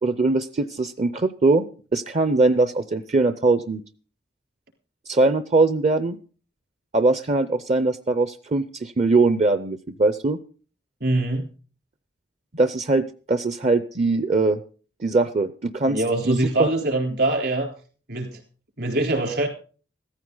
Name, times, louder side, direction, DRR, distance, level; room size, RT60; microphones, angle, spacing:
voice 1, 0.0-1.7 1.9-3.8 5.1-6.2 6.9-10.4 12.5-14.6 15.0-16.7, right 3 dB, 40° right, 12 dB, 0.6 m, -21 dB
voice 2, 11.0-11.5 15.8-17.7 18.1-18.4 18.8-19.5, right 2 dB, 60° right, 4 dB, 3.7 m, -23 dB
15.5 x 14.5 x 3.9 m, 0.39 s
head